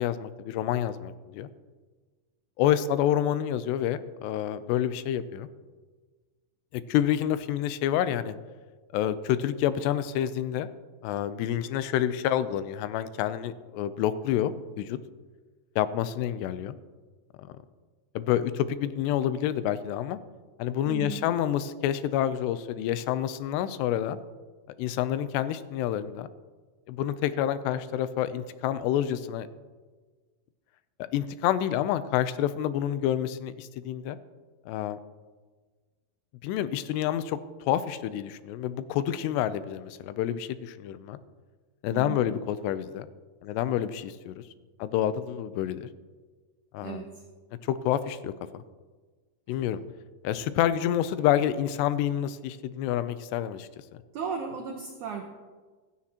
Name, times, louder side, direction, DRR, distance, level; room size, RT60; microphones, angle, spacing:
voice 1, 0.0-1.5 2.6-5.5 6.7-8.4 8.9-10.7 11.0-15.0 15.8-16.8 17.4-17.5 18.2-20.2 20.6-24.2 24.8-26.3 26.9-29.5 31.0-34.2 34.7-35.0 36.4-37.4 37.7-41.2 41.8-43.1 43.4-44.4 44.8-45.9 46.7-47.0 47.6-48.6 49.5-49.8 50.2-53.7, left 11 dB, 85° left, 14 dB, 2.7 m, -28 dB
voice 2, 20.9-21.2 41.9-42.2 46.8-47.2 49.5-49.6 54.1-55.2, right 6 dB, 85° right, 3 dB, 1.7 m, -36 dB
16.0 x 13.0 x 2.9 m, 1.4 s
omnidirectional pair, 4.8 m